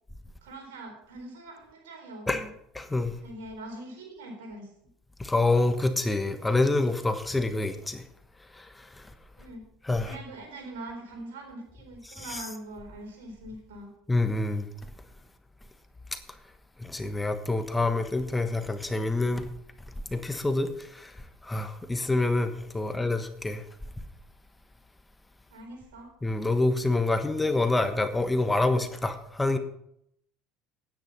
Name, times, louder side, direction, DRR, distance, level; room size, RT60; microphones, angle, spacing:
voice 1, 0.4-2.5 3.2-4.7 9.4-9.6 10.0-13.9 22.8-23.0 25.5-26.1, right 1 dB, 80° right, 4.1 m, -43 dB
voice 2, 2.7-3.2 5.2-8.0 9.8-10.2 12.2-12.4 14.1-14.6 16.8-19.5 20.1-20.7 21.4-23.6 26.2-29.6, left 2 dB, 10° left, 1.2 m, -26 dB
10.0 x 9.6 x 5.5 m
hypercardioid pair, 80°, 0 cm